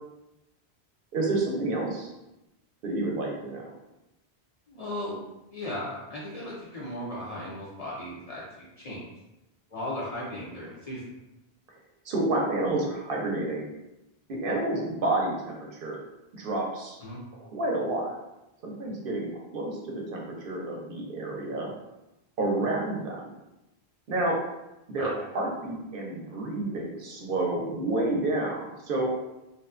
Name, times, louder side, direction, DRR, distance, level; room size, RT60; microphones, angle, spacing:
voice 1, 1.1-2.1 2.8-3.7 12.0-13.6 14.3-16.0 16.3-17.0 17.4-18.1 18.6-21.7 22.4-23.3 24.1-24.4 24.9-29.1, right 2 dB, 65° right, -1 dB, 0.7 m, -29 dB
voice 2, 4.7-5.2 5.5-9.0 9.7-11.0 17.0-17.2 25.0-25.1, left 1 dB, 50° left, -7 dB, 0.5 m, -36 dB
2.7 x 2.1 x 2.3 m, 0.94 s
omnidirectional pair, 1.1 m